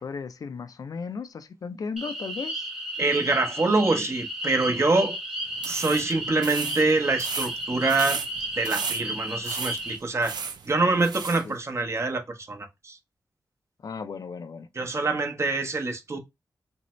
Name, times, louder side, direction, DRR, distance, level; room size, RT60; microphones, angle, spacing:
voice 1, 0.0-2.7 11.4-11.6 13.8-14.7, left 5 dB, 55° left, 0.4 m, -35 dB
sound 1, 2.0-10.0, right 1 dB, 5° right, 0.8 m, -33 dB
voice 2, 3.0-5.2 5.7-8.2 8.6-10.3 10.7-12.2 12.5-13.0 14.8-16.2, right 3 dB, 40° right, 0.7 m, -25 dB
sound 2, 5.5-11.5, right 6 dB, 75° right, 0.4 m, -35 dB
2.6 x 2.0 x 3.0 m
cardioid pair, 50°, 7 cm